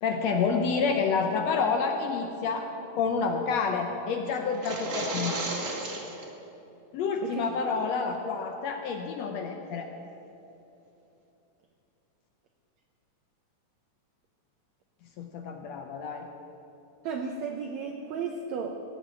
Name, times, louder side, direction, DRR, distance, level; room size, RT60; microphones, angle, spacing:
voice 1, 0.0-5.4 6.9-9.9 15.2-16.3, left 5 dB, 70° left, 4 dB, 1.7 m, -29 dB
sound 1, 4.5-6.3, right 2 dB, 40° right, 1.2 m, -33 dB
voice 2, 7.2-7.8 17.0-18.8, right 5 dB, 70° right, 3 dB, 1.9 m, -34 dB
17.5 x 7.3 x 8.5 m, 2.9 s
omnidirectional pair, 3.6 m